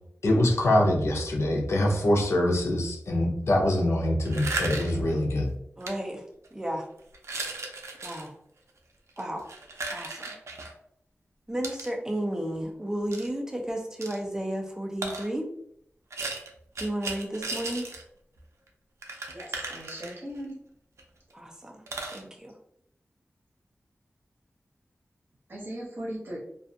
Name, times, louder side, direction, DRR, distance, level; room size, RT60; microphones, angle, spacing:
voice 1, 0.2-5.5, left 1 dB, 75° left, 0 dB, 0.6 m, -24 dB
sound 1, 4.2-5.0 5.8-5.9 6.4-6.7 7.1-8.3 9.1-10.7 11.6-11.9 13.1-13.3 14.0-14.2 15.0-15.3 16.1-18.0 18.4-18.5 18.7-18.8 19.0-20.4 21.0-21.1 21.3-21.4 21.9-22.2, right 3 dB, 85° right, 0.4 m, -35 dB
voice 2, 5.8-6.2 6.5-6.9 8.0-8.4 9.2-9.4 9.9-10.4 11.5-15.5 16.8-17.9 21.3-21.8 22.1-22.5, right 1 dB, 10° right, 0 dB, 0.5 m, -33 dB
voice 3, 19.3-20.5 25.5-26.4, equal, 50° right, -5 dB, 1.1 m, -38 dB
2.4 x 2.3 x 2.6 m, 0.71 s
wide cardioid pair, 80°, 5 cm